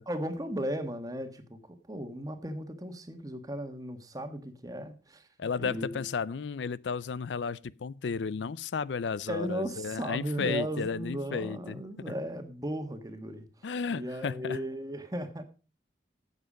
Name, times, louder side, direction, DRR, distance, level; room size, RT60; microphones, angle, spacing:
voice 1, 0.1-5.3 5.6-6.0 9.3-15.4, equal, 20° right, 1.4 m, -36 dB
voice 2, 5.4-11.8 13.6-14.6, left 5 dB, 90° left, 0.5 m, -33 dB
12.5 x 8.2 x 5.0 m
head